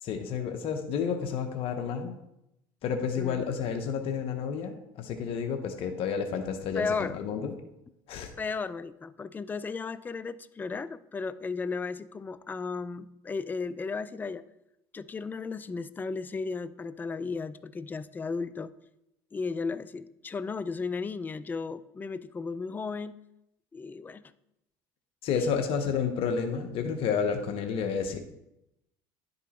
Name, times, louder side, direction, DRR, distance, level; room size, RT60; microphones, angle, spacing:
voice 1, 0.0-2.2 2.8-7.5 8.1-8.3 25.2-28.2, left 6 dB, 60° left, 6 dB, 0.9 m, -30 dB
voice 2, 3.2-3.6 6.8-7.2 8.4-14.4 14.9-18.7 19.3-23.2 23.7-24.2, left 4 dB, 15° left, 15 dB, 0.4 m, -35 dB
10.0 x 5.4 x 4.2 m, 0.86 s
supercardioid pair, 95°, 11 cm